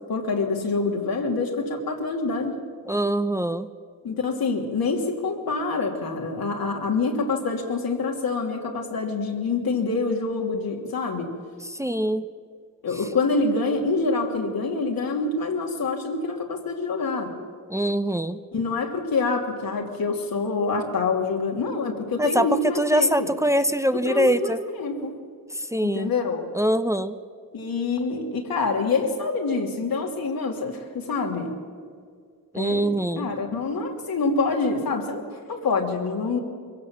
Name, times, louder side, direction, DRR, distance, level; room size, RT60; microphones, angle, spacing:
voice 1, 0.1-2.6 4.0-11.3 12.8-17.3 18.5-23.3 23.9-25.1 25.8-26.5 27.5-31.5 32.5-36.4, left 3 dB, 85° left, 0 dB, 2.9 m, -26 dB
voice 2, 2.9-3.7 11.7-12.3 17.7-18.4 22.2-24.6 25.5-26.1 26.5-27.2 32.5-33.3, right 1 dB, 10° right, 10 dB, 0.8 m, -23 dB
23.0 x 16.5 x 7.6 m, 2.1 s
cardioid pair, 65°, 35 cm